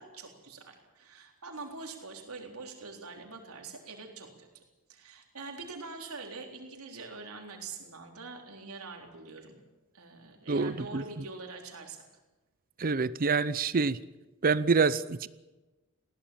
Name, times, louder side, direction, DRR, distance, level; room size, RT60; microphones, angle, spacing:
voice 1, 0.0-4.6 4.9-9.6 9.9-12.0, right 3 dB, 80° right, 2 dB, 4.0 m, -44 dB
voice 2, 10.5-11.0 12.8-14.0 14.4-15.3, right 4 dB, 40° right, 17 dB, 0.6 m, -26 dB
20.5 x 16.5 x 8.9 m, 1.1 s
head